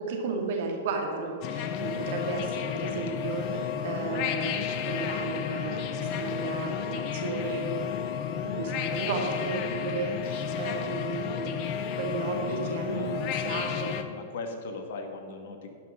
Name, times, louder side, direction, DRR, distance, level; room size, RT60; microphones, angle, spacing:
voice 1, 0.1-4.6 4.9-7.7 8.4-11.6 12.0-14.0, right 4 dB, 55° right, 2 dB, 2.1 m, -34 dB
sound 1, 1.4-14.0, left 8 dB, 45° left, 0.8 m, -32 dB
voice 2, 12.9-13.2 14.1-15.7, left 3 dB, 60° left, 5 dB, 1.6 m, -39 dB
12.0 x 5.9 x 6.6 m, 2.5 s
hypercardioid pair, 110°, 0 cm